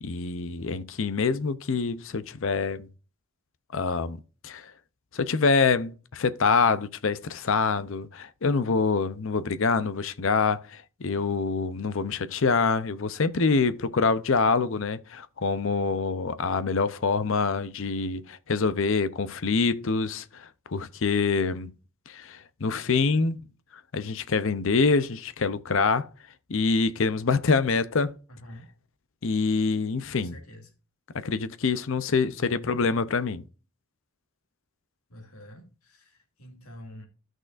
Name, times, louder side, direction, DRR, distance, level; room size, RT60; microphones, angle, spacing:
voice 1, 0.0-2.9 3.7-4.2 4.4-4.7 5.1-21.7 22.1-23.4 23.9-26.1 26.5-28.2 29.2-30.4 31.1-33.4, left 4 dB, 65° left, 0.6 m, -25 dB
voice 2, 28.3-28.6 30.1-30.7 32.4-32.8 35.1-37.1, equal, 80° left, 2.3 m, -47 dB
13.0 x 6.3 x 2.5 m
head